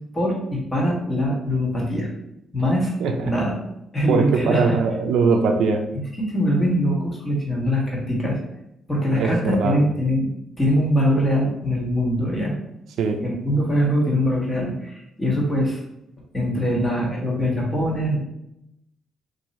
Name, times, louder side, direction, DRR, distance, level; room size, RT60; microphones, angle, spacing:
voice 1, 0.1-2.1 2.5-2.9 3.2-3.6 3.9-4.7 5.9-8.4 8.9-10.3 10.6-12.5 13.2-15.8 16.3-18.2, equal, 20° left, -3 dB, 1.3 m, -22 dB
voice 2, 3.0-3.3 4.1-5.9 9.1-9.8 13.0-13.2, right 4 dB, 75° right, 5 dB, 0.4 m, -21 dB
2.9 x 2.6 x 4.1 m, 0.85 s
cardioid pair, 90°, 0 cm